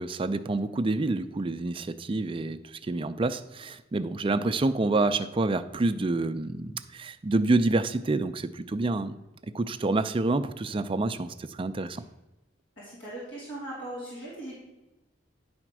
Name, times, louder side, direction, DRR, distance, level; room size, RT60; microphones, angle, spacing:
voice 1, 0.0-9.2 9.5-12.0, right 2 dB, 30° right, 10 dB, 0.4 m, -28 dB
voice 2, 12.8-14.5, right 1 dB, 80° left, -7 dB, 3.0 m, -39 dB
10.0 x 4.3 x 6.0 m, 1.0 s
head